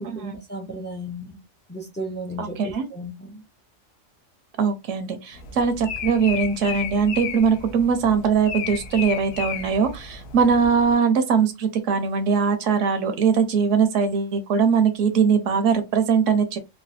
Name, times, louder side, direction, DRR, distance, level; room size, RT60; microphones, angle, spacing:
voice 1, 0.0-1.4 1.7-3.4, equal, 20° left, 0.3 m, -34 dB
voice 2, 2.4-2.9 4.6-16.6, right 6 dB, 75° right, 0.9 m, -21 dB
sound 1, 5.3-10.9, left 7 dB, 65° left, 0.7 m, -34 dB
3.2 x 2.2 x 2.5 m
omnidirectional pair, 1.4 m